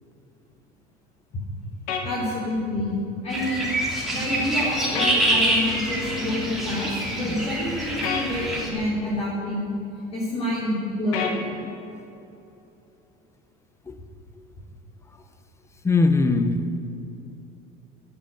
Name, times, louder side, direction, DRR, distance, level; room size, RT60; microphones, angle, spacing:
sound 1, 1.9-2.1 4.9-5.2 8.0-8.3 11.1-11.4, left 6 dB, 90° left, 1.9 m, -27 dB
voice 1, 2.0-3.7 4.1-9.7 10.1-11.4, left 1 dB, 35° left, -7 dB, 3.2 m, -28 dB
sound 2, 3.3-8.7, right 1 dB, ahead, 2.9 m, -26 dB
voice 2, 15.8-16.8, left 3 dB, 15° left, 9 dB, 0.9 m, -20 dB
10.0 x 10.0 x 9.2 m, 2.9 s
cardioid pair, 130°, 19 cm